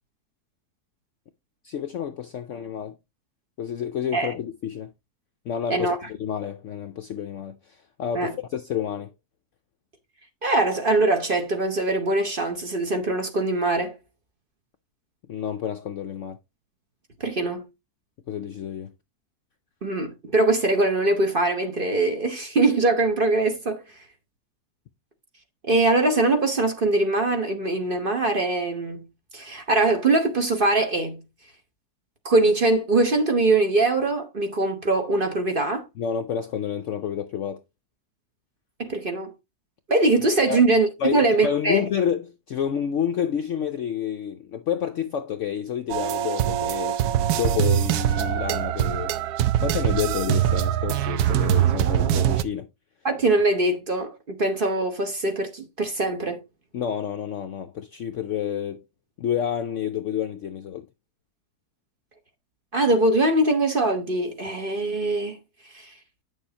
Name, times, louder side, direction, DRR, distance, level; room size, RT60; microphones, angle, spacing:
voice 1, 1.6-3.0 3.6-4.9 5.5-9.1 15.3-16.4 18.3-18.9 36.0-37.6 40.4-40.6 41.0-47.0 47.3-49.1 49.6-52.7 56.7-58.8 59.2-60.9, left 8 dB, 65° left, 0.7 m, -29 dB
voice 2, 10.4-13.9 17.2-17.7 19.8-23.8 25.7-29.1 29.3-31.2 32.2-35.8 38.8-39.3 39.9-41.8 53.0-56.4 62.7-65.4 65.7-65.9, right 2 dB, 40° right, 1.0 m, -22 dB
sound 1, 45.9-52.4, right 11 dB, 75° right, 1.1 m, -23 dB
8.9 x 6.5 x 2.8 m
omnidirectional pair, 1.7 m